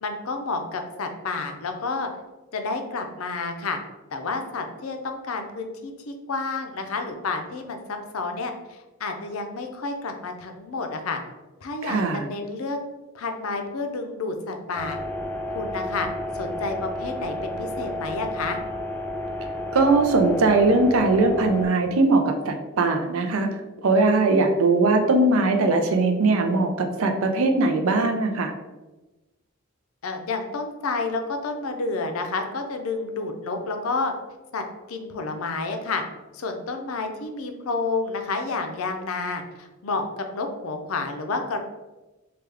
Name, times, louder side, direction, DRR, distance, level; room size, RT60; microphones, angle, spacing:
voice 1, 0.0-2.1 2.5-3.8 4.1-11.2 11.6-12.8 13.1-15.0 15.5-16.1 16.3-18.6 30.0-34.1 34.5-36.0 36.3-41.6, left 3 dB, 80° left, 5 dB, 0.5 m, -30 dB
voice 2, 11.8-12.2 19.7-28.5, right 3 dB, 75° right, 4 dB, 0.5 m, -20 dB
sound 1, 14.7-21.7, left 1 dB, 10° left, 0.3 m, -31 dB
3.3 x 2.3 x 3.4 m, 1.1 s
head